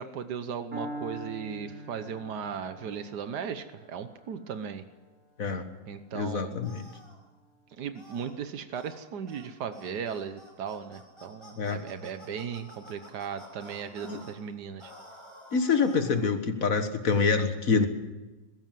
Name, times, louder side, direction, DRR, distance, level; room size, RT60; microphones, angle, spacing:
voice 1, 0.0-4.8 5.9-6.6 7.8-14.9, right 7 dB, 90° right, 10 dB, 1.6 m, -37 dB
Piano, 0.7-8.6, right 1 dB, 60° right, 3.9 m, -45 dB
voice 2, 6.1-6.8 11.6-11.8 14.0-14.2 15.5-17.9, left 5 dB, 60° left, 8 dB, 1.9 m, -26 dB
sound 1, 6.6-7.2 7.9-8.3 8.7-9.0 9.3-9.5 9.7-14.3 14.8-16.3, left 1 dB, 15° left, 5.9 m, -50 dB
21.0 x 16.5 x 7.6 m, 1.1 s
omnidirectional pair, 1.7 m